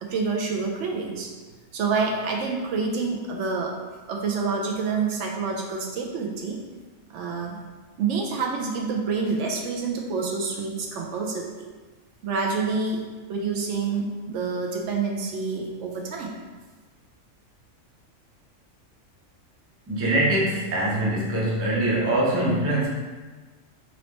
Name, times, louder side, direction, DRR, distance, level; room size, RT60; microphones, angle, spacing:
voice 1, 0.0-1.3 1.7-3.8 4.1-6.6 7.1-7.6 8.0-11.6 12.2-13.0 13.3-16.3, right 4 dB, 70° right, 0 dB, 0.9 m, -27 dB
voice 2, 19.9-22.9, right 1 dB, 20° right, -4 dB, 0.4 m, -23 dB
4.1 x 2.9 x 3.1 m, 1.3 s
omnidirectional pair, 1.4 m